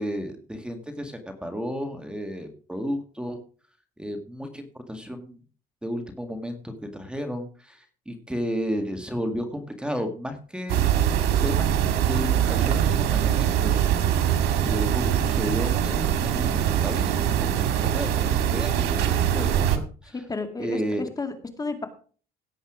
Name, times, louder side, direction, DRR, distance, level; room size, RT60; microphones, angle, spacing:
voice 1, 0.0-3.4 4.0-5.4 5.8-10.8 11.4-11.7 12.1-13.9 14.1-20.2 20.6-21.0, equal, 5° right, 6 dB, 1.9 m, -33 dB
sound 1, 10.7-19.8, right 10 dB, 90° right, 1.9 m, -23 dB
voice 2, 20.1-21.9, left 3 dB, 20° left, 7 dB, 2.2 m, -32 dB
17.0 x 8.0 x 5.0 m, 0.41 s
cardioid pair, 110°, 17 cm